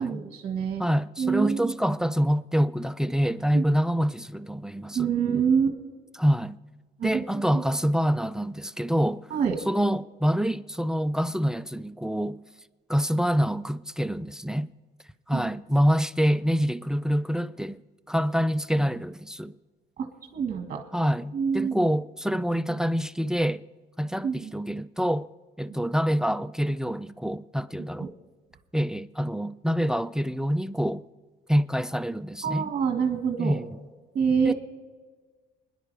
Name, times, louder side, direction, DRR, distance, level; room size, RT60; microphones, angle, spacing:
voice 1, 0.0-0.8 1.2-1.7 3.5-3.6 5.0-5.8 7.0-7.2 7.5-7.6 9.3-9.6 15.3-15.5 20.0-20.1 20.3-20.8 21.3-21.8 24.2-24.5 28.0-28.1 32.4-33.5 34.2-34.5, right 6 dB, 45° right, 1.6 m, -26 dB
voice 2, 0.8-5.1 6.2-6.6 7.0-9.3 9.7-12.4 12.9-14.7 15.3-17.8 18.1-19.5 20.9-23.6 24.0-25.3 25.6-28.1 28.7-31.0 31.5-32.7 33.4-33.8 34.4-34.5, equal, 5° right, 0.3 m, -26 dB
26.0 x 10.5 x 3.4 m
cardioid pair, 110°, 17 cm